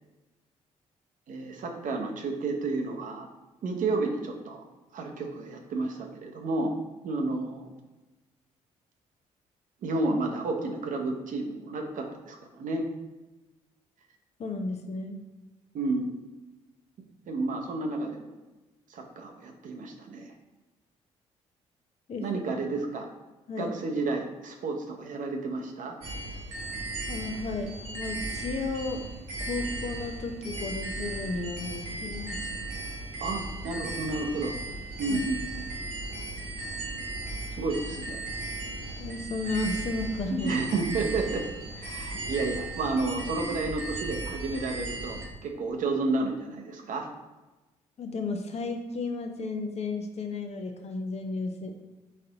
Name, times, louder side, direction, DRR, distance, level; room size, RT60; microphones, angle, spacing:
voice 1, 1.3-3.3 3.6-4.6 4.9-6.7 7.0-7.7 9.8-12.9 15.7-16.1 17.3-18.3 18.9-20.3 22.2-23.1 23.6-25.9 33.2-34.5 35.0-35.7 37.6-38.2 40.3-41.4 41.8-47.1, right 3 dB, 60° right, 3 dB, 0.8 m, -31 dB
voice 2, 14.4-15.2 22.1-22.6 23.5-23.8 27.1-29.0 29.4-32.5 35.1-35.2 39.0-40.6 48.0-51.8, left 3 dB, 45° left, 4 dB, 0.7 m, -33 dB
sound 1, 26.0-45.2, right 2 dB, 85° right, 1.1 m, -36 dB
4.2 x 2.6 x 3.9 m, 1.1 s
hypercardioid pair, 50°, 15 cm